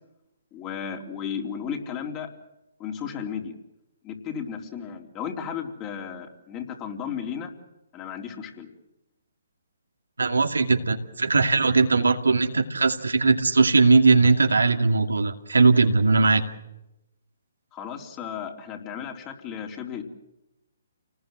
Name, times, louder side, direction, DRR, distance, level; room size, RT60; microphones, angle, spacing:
voice 1, 0.5-2.3 2.8-3.5 4.0-7.5 7.9-8.7 17.7-20.0, left 7 dB, 25° left, 2 dB, 3.8 m, -34 dB
voice 2, 10.2-16.4, right 3 dB, 85° right, 5 dB, 2.3 m, -19 dB
29.0 x 19.5 x 7.9 m, 0.92 s
hypercardioid pair, 140°, 0 cm